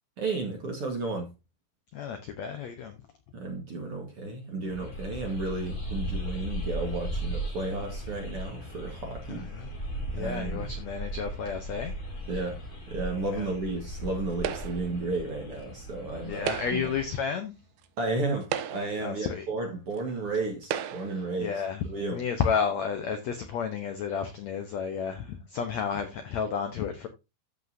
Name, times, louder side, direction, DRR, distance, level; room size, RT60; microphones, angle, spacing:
voice 1, 0.2-1.3 3.3-9.5 10.2-10.7 12.3-12.6 12.9-16.8 18.0-21.5 21.8-22.2, right 3 dB, 50° right, 1.9 m, -33 dB
voice 2, 1.9-2.9 9.3-9.7 10.1-11.9 13.3-13.5 16.2-17.5 19.0-19.5 21.1-21.8 22.1-27.1, left 6 dB, 75° left, 1.6 m, -32 dB
sound 1, 4.7-17.2, right 1 dB, 30° left, 3.5 m, -37 dB
sound 2, 14.4-15.0 16.3-17.0 17.8-17.9 18.4-19.1 20.0-20.1 20.6-21.2, right 10 dB, 80° right, 2.8 m, -34 dB
14.0 x 5.3 x 2.7 m
omnidirectional pair, 4.5 m